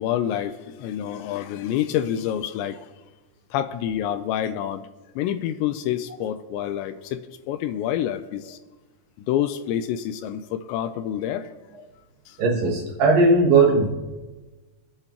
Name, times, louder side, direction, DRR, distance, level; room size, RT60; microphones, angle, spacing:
voice 1, 0.0-2.9 3.5-4.8 5.2-8.6 9.2-11.5 12.3-12.4, left 10 dB, 85° left, 10 dB, 2.7 m, -27 dB
voice 2, 12.4-13.9, right 3 dB, 70° right, 0 dB, 2.3 m, -18 dB
26.5 x 8.8 x 2.9 m, 1.2 s
omnidirectional pair, 5.3 m